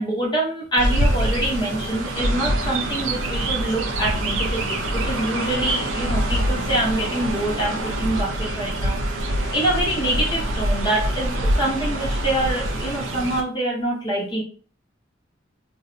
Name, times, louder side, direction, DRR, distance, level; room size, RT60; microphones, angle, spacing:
voice 1, 0.0-9.2 9.5-14.4, right 1 dB, 25° left, -3 dB, 0.7 m, -25 dB
Chirp tweet, 0.8-13.4, right 1 dB, 85° right, 0.6 m, -25 dB
2.6 x 2.1 x 3.7 m, 0.42 s
head